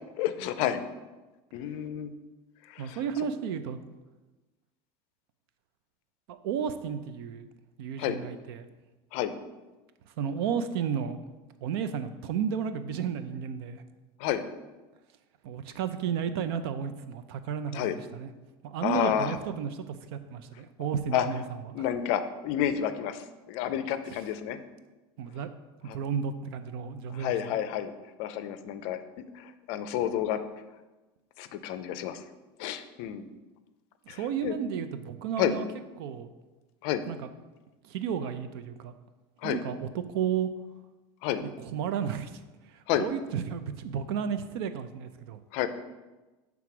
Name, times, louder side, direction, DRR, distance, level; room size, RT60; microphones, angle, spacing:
voice 1, 0.2-0.8 1.5-2.1 2.7-3.0 8.0-8.2 9.1-9.3 14.2-14.4 17.7-18.0 18.8-19.4 21.1-21.3 21.7-24.6 25.9-26.0 27.1-27.9 28.2-29.0 29.3-30.4 31.4-32.2 32.6-33.3 34.1-34.5 35.4-35.5 36.8-37.0 39.4-39.6 41.2-41.4 42.9-43.1 45.5-45.7, left 10 dB, 50° left, 11 dB, 0.5 m, -30 dB
voice 2, 2.8-3.8 6.3-7.5 7.8-8.7 10.2-11.2 11.6-13.8 15.4-18.3 18.6-21.4 21.7-21.8 25.2-25.5 25.9-27.6 34.1-35.7 36.0-36.3 37.1-37.3 37.8-38.9 39.4-40.5 41.6-42.4 42.7-45.4, right 7 dB, 70° right, 10 dB, 0.5 m, -33 dB
7.6 x 3.6 x 5.9 m, 1.2 s
supercardioid pair, 170°, 13 cm